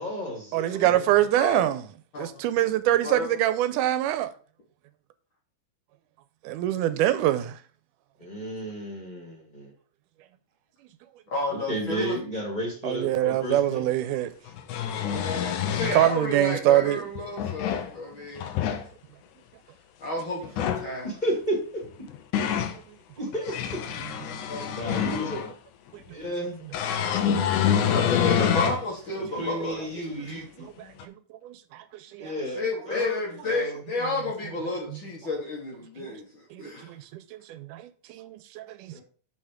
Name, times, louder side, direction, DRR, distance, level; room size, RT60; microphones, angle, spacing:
voice 1, 0.0-1.0 2.7-2.8 8.2-9.7 11.5-13.9 21.0-21.8 23.2-23.8 24.7-25.5 26.1-26.6 29.2-30.7 32.2-33.8 38.9-39.0, equal, 15° left, 2.0 m, -32 dB
voice 2, 0.5-1.8 2.2-4.3 6.4-7.6 12.8-14.3 15.9-17.0 22.7-23.0 24.3-24.4 27.3-27.4 31.0-31.1 31.4-32.3 36.0-36.1 36.5-39.0, right 13 dB, 90° right, 2.2 m, -25 dB
voice 3, 1.3-1.7 2.1-2.4 3.0-3.4 11.3-12.2 15.0-18.5 20.0-21.1 24.5-25.5 27.9-29.9 30.3-30.4 32.5-36.9, left 2 dB, 50° left, 1.8 m, -32 dB
sound 1, 13.5-13.6 14.5-16.1 17.2-17.9 18.4-18.8 20.4-20.9 21.8-22.8 23.3-25.5 26.7-28.8 29.4-29.5 31.0-31.1, left 9 dB, 80° left, 2.2 m, -26 dB
6.2 x 5.6 x 5.0 m
omnidirectional pair, 3.6 m